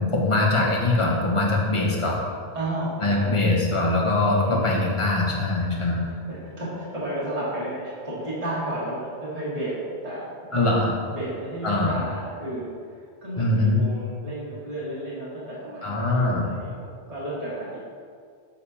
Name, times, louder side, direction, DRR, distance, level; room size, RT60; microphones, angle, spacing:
voice 1, 0.0-2.2 3.0-6.0 10.5-10.9 11.6-12.1 13.4-13.8 15.8-16.4, left 2 dB, 30° left, -2 dB, 1.0 m, -22 dB
voice 2, 2.5-3.3 4.5-4.7 5.7-10.8 11.1-17.8, right 1 dB, 35° right, -8 dB, 1.6 m, -33 dB
6.9 x 6.6 x 2.8 m, 2.1 s
omnidirectional pair, 1.1 m